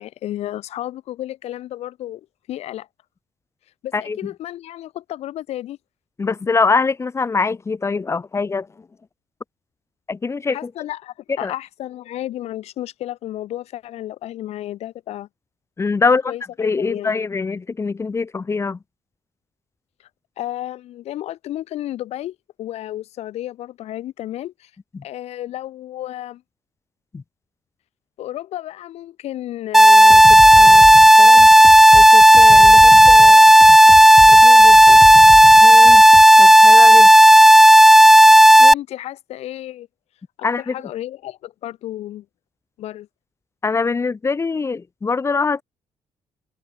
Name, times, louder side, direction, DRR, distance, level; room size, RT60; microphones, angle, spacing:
voice 1, 0.0-2.9 3.8-5.8 10.5-15.3 16.3-16.4 16.8-17.2 20.4-24.7 25.0-26.4 28.2-33.5 34.3-35.0 38.6-39.9 40.6-42.2 42.8-43.1, left 13 dB, 85° left, 2.5 m, -32 dB
voice 2, 6.2-8.7 10.1-10.7 11.4-11.5 15.8-16.3 16.6-18.8 24.9-25.0 27.1-27.2 33.7-33.8 35.6-36.0 36.4-37.1 40.4-40.7 43.6-45.6, left 4 dB, 25° left, 2.9 m, -23 dB
sound 1, 29.7-38.7, equal, 5° right, 0.5 m, -8 dB
sound 2, 30.0-36.2, left 7 dB, 45° left, 6.0 m, -30 dB
cardioid pair, 130°, 11 cm